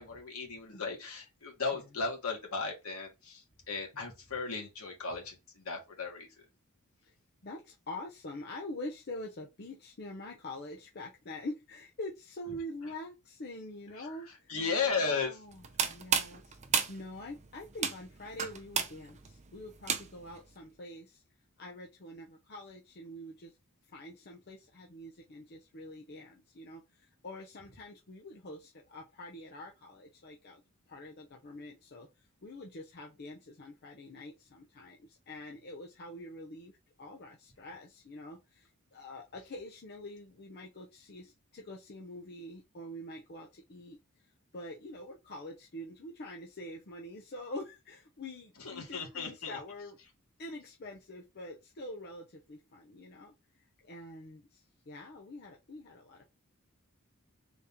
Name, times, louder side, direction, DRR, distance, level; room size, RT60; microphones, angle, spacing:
voice 1, 0.0-6.3 14.0-14.1 14.5-15.3 48.6-49.6, left 4 dB, 75° left, 1.8 m, -35 dB
voice 2, 7.4-14.5 14.8-16.6 16.9-21.2 21.6-23.6 23.9-50.0 50.4-56.2, left 1 dB, 45° left, 0.6 m, -45 dB
sound 1, 15.5-20.4, right 7 dB, 30° right, 0.6 m, -33 dB
4.0 x 2.9 x 3.5 m
head